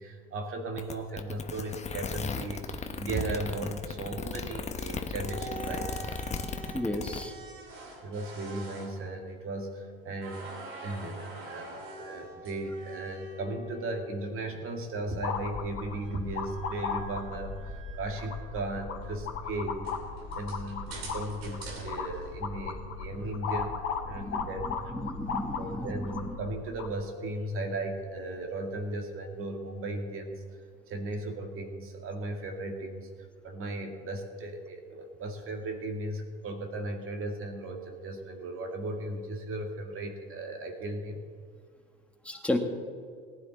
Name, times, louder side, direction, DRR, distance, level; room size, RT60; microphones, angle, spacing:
voice 1, 0.0-5.9 8.0-20.0 20.3-24.9 25.6-30.4 30.9-33.1 33.4-41.2, right 2 dB, 45° right, 4 dB, 2.1 m, -36 dB
sound 1, 0.8-7.2, left 5 dB, 20° left, 0.9 m, -36 dB
sound 2, 5.1-9.9 10.2-14.5 15.8-18.5 19.0-19.1 19.8-22.8, right 2 dB, 75° right, 2.9 m, -45 dB
voice 2, 6.7-7.3 23.2-23.3 24.1-24.5 24.9-25.9 26.3-26.4 42.2-42.6, left 1 dB, 5° left, 3 dB, 1.6 m, -33 dB
sound 3, 15.2-27.0, left 5 dB, 45° left, 1.8 m, -37 dB
18.5 x 9.7 x 4.0 m, 2.1 s
hypercardioid pair, 70°, 31 cm